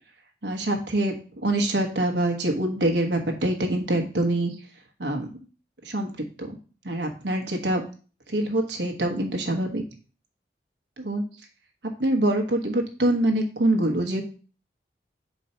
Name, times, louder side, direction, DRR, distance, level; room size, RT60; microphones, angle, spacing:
voice 1, 0.4-1.1 1.4-4.5 5.0-5.3 5.8-6.1 6.4-6.5 6.8-7.8 8.3-9.8 11.0-11.2 12.0-14.2, right 1 dB, 85° right, 3 dB, 1.2 m, -24 dB
4.6 x 4.1 x 5.5 m, 0.37 s
head